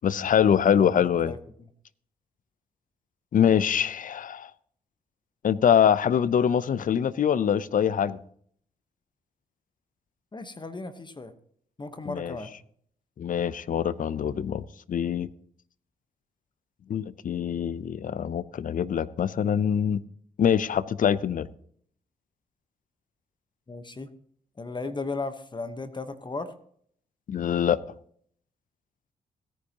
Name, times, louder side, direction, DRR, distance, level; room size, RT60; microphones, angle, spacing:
voice 1, 0.0-1.3 3.3-4.5 5.4-8.2 12.1-12.4 13.2-15.3 16.9-20.0 20.4-21.5 27.3-27.8, left 8 dB, 55° left, 18 dB, 0.6 m, -24 dB
voice 2, 0.5-1.4 10.3-11.3 11.8-12.5 23.7-24.1 24.6-26.5, left 3 dB, 30° left, 10 dB, 1.1 m, -36 dB
16.5 x 10.0 x 2.9 m, 0.62 s
supercardioid pair, 50°, 16 cm